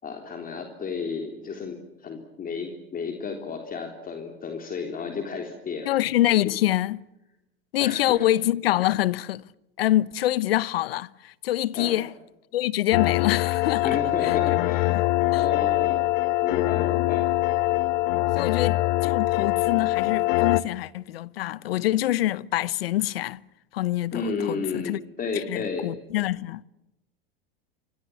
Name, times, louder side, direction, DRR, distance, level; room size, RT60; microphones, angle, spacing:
voice 1, 0.0-5.9 6.4-6.5 7.8-8.3 11.7-12.0 13.8-15.0 15.3-16.1 16.4-17.2 18.3-18.6 24.1-25.9, left 5 dB, 30° left, 3.6 m, -32 dB
voice 2, 5.9-7.0 7.7-9.4 9.8-12.1 12.5-13.9 14.2-14.3 14.9-15.1 15.3-15.4 18.3-23.4 23.7-25.0 25.5-26.6, left 14 dB, 75° left, 1.0 m, -25 dB
sound 1, 12.9-20.6, left 18 dB, 60° left, 1.2 m, -23 dB
28.0 x 24.5 x 7.2 m
hypercardioid pair, 100°, 29 cm